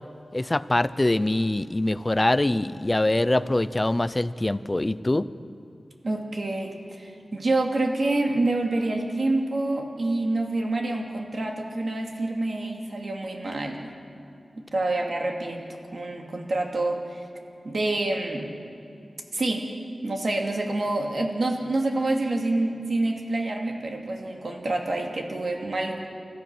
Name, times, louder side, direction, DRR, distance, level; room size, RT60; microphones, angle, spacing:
voice 1, 0.3-5.3, left 1 dB, 25° left, 14 dB, 0.6 m, -24 dB
voice 2, 6.0-13.9 14.6-17.2 17.6-18.5 19.3-19.7 20.0-26.1, right 2 dB, 55° right, 2 dB, 2.6 m, -27 dB
29.5 x 14.0 x 6.2 m, 2.5 s
wide cardioid pair, 80°, 0 cm